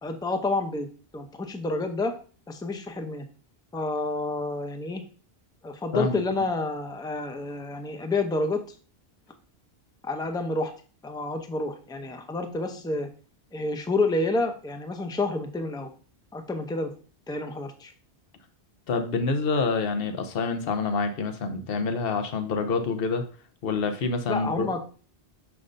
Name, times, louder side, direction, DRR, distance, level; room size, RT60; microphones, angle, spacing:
voice 1, 0.0-0.9 1.1-2.1 2.5-3.3 3.7-5.0 5.6-8.6 10.0-10.7 11.0-13.1 13.5-15.9 16.3-16.9 17.3-17.9 24.3-24.8, left 2 dB, 5° left, 6 dB, 0.5 m, -29 dB
voice 2, 5.9-6.4 18.9-23.2 23.6-24.7, left 4 dB, 65° left, 7 dB, 1.0 m, -27 dB
6.4 x 5.9 x 2.6 m, 0.39 s
omnidirectional pair, 1.1 m